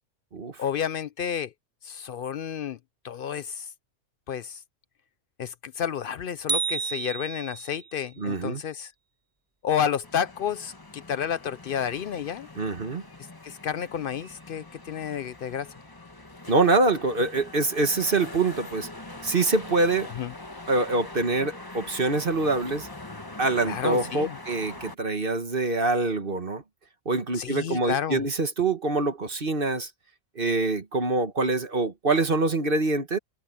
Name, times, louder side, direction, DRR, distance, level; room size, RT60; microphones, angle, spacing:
voice 1, 0.6-1.5 1.8-2.8 3.0-3.7 4.3-4.6 5.4-8.9 9.6-12.5 13.4-15.7 20.1-20.3 23.6-24.4 27.3-28.2, left 8 dB, 60° left, 0.6 m, -30 dB
sound 1, 6.5-7.9, right 5 dB, 25° right, 0.5 m, -30 dB
voice 2, 8.2-8.6 12.6-13.0 16.5-18.9 19.2-20.1 20.7-22.9 23.4-26.6 27.0-29.9 30.3-33.2, right 3 dB, 45° right, 1.7 m, -25 dB
sound 2, 10.0-24.9, left 2 dB, 20° left, 1.4 m, -43 dB
omnidirectional pair, 1.3 m